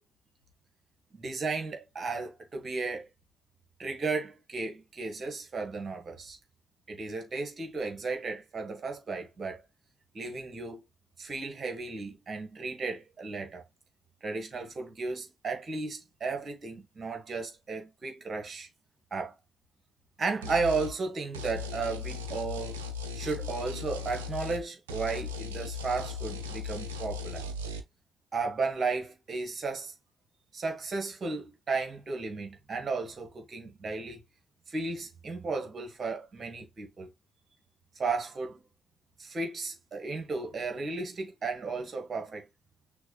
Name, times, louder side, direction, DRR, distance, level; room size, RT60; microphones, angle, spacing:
voice 1, 1.1-3.1 3.8-6.4 6.9-9.6 10.1-10.8 11.2-13.6 14.2-18.7 19.1-19.3 20.2-22.8 23.1-27.4 28.3-29.9 30.5-34.2 34.7-37.1 38.0-38.6 39.2-42.4, right 4 dB, 40° right, 1.9 m, -34 dB
sound 1, 20.4-20.9 21.3-24.6 24.9-27.8, left 4 dB, 80° right, 0.5 m, -37 dB
6.2 x 2.6 x 3.2 m
figure-of-eight pair, 40°, 0 cm